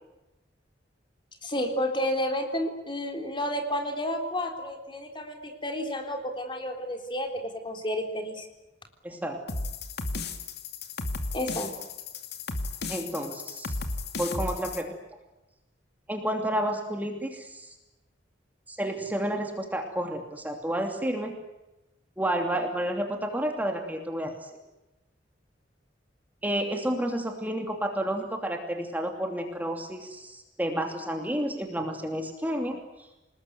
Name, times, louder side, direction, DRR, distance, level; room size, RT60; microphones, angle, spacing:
voice 1, 1.4-8.5 11.3-11.7, left 1 dB, 25° left, 4 dB, 3.7 m, -31 dB
voice 2, 9.0-9.4 12.9-13.7 14.2-14.9 16.1-17.7 18.7-21.3 22.2-24.5 26.4-32.8, right 1 dB, 10° right, 3 dB, 2.8 m, -30 dB
sound 1, 9.5-14.8, left 3 dB, 60° left, 2.5 m, -34 dB
28.5 x 20.0 x 9.6 m, 0.99 s
head